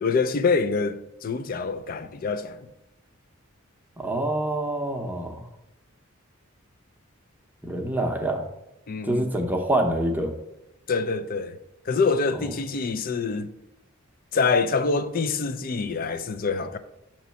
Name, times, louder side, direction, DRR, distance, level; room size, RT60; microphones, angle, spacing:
voice 1, 0.0-2.7 8.9-9.3 10.9-11.6 11.9-13.5 14.3-16.8, left 4 dB, 45° left, 0.4 m, -25 dB
voice 2, 4.0-5.4 7.6-8.4 9.0-10.3, right 1 dB, 10° right, 0.7 m, -26 dB
7.2 x 3.1 x 5.6 m
head